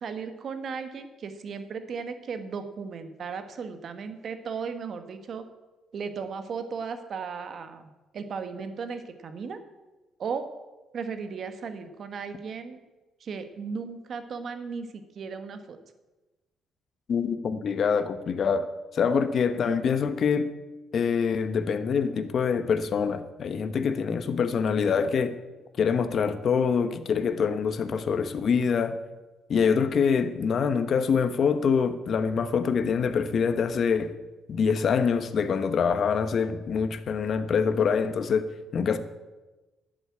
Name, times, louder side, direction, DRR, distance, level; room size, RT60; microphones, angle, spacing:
voice 1, 0.0-5.5 5.9-9.6 10.2-10.5 10.9-12.8 13.2-15.8, right 5 dB, 55° right, 9 dB, 1.5 m, -36 dB
voice 2, 17.1-20.5 20.9-25.3 25.8-29.0 29.5-34.1 34.5-39.0, left 6 dB, 55° left, 11 dB, 1.1 m, -25 dB
11.5 x 8.0 x 8.5 m, 1.1 s
cardioid pair, 90°, 0 cm